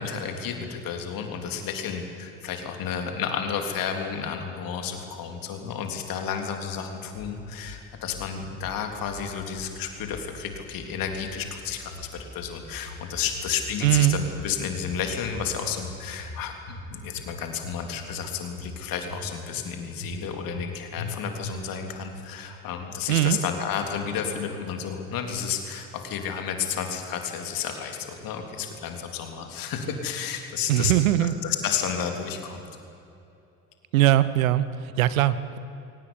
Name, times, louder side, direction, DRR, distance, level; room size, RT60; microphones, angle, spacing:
voice 1, 0.0-30.9 31.4-32.7, left 7 dB, 55° left, 4 dB, 3.6 m, -31 dB
sound 1, 7.1-7.8 8.1-8.7 9.1-9.7 10.0-10.7 11.0-11.6 11.9-12.6 12.9-13.6 13.8-14.5 14.8-15.5 15.7-16.4 16.7-17.3 17.6-18.3 18.6-19.2 19.5-19.6 20.0-20.7 21.0-21.1 21.4-21.9, left 2 dB, 85° left, 3.8 m, -40 dB
voice 2, 13.8-14.2 23.1-23.4 30.7-31.4 33.9-35.6, right 14 dB, 75° right, 15 dB, 1.1 m, -21 dB
23.0 x 18.5 x 9.8 m, 2.8 s
figure-of-eight pair, 60°, 41 cm